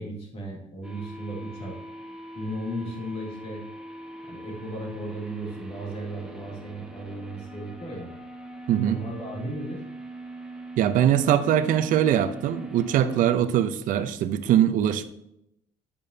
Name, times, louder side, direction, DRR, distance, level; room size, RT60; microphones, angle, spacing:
voice 1, 0.0-1.7 2.3-3.6 4.3-8.1 8.8-9.8, right 1 dB, 45° left, -2 dB, 2.7 m, -35 dB
sound 1, 0.8-13.3, right 2 dB, 5° right, 1.1 m, -42 dB
voice 2, 8.7-9.0 10.8-15.1, right 10 dB, 60° right, 12 dB, 0.6 m, -22 dB
8.6 x 6.8 x 2.8 m, 0.79 s
cardioid pair, 130°, 15 cm